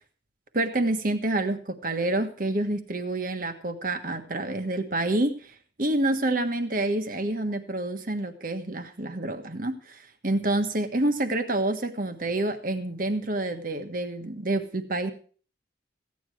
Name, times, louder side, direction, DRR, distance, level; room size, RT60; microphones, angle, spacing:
voice 1, 0.5-15.1, right 2 dB, 45° right, 8 dB, 1.4 m, -28 dB
15.5 x 9.7 x 4.8 m, 0.41 s
head